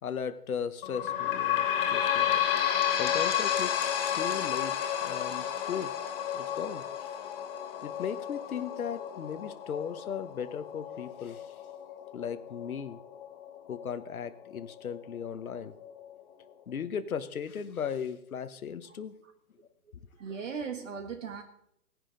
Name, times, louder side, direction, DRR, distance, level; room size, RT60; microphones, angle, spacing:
voice 1, 0.0-2.4 2.9-3.7 4.1-5.9 6.3-7.1 7.8-11.5 12.1-13.0 13.7-15.7 16.7-19.1, left 7 dB, 65° left, 10 dB, 1.2 m, -37 dB
sound 1, 0.8-14.0 14.6-14.7 14.9-15.0 15.8-15.9, left 10 dB, 35° left, 2.3 m, -31 dB
voice 2, 20.2-21.4, right 6 dB, 55° right, 6 dB, 1.5 m, -38 dB
17.5 x 10.5 x 3.9 m, 0.76 s
hypercardioid pair, 150°, 46 cm